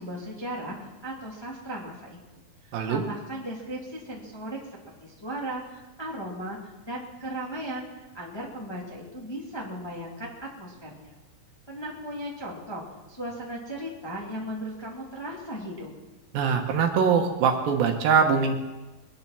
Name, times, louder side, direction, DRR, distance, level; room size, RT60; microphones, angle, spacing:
voice 1, 0.0-2.4 2.9-4.6 5.0-6.6 6.8-11.2 11.7-15.9, right 1 dB, 10° left, -3 dB, 1.9 m, -36 dB
voice 2, 16.3-18.5, right 6 dB, 75° right, 4 dB, 3.0 m, -22 dB
21.5 x 10.5 x 6.0 m, 1.1 s
omnidirectional pair, 4.3 m